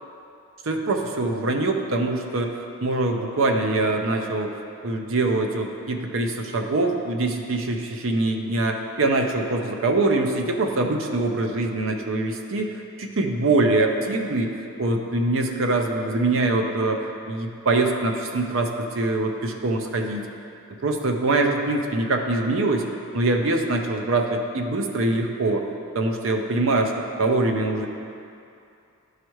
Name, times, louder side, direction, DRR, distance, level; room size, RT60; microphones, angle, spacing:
voice 1, 0.6-4.5 4.8-14.5 14.8-20.2 20.8-22.9 23.1-25.7 25.9-26.9 27.2-27.9, right 2 dB, 65° right, 3 dB, 0.6 m, -23 dB
11.5 x 4.8 x 3.1 m, 2.6 s
head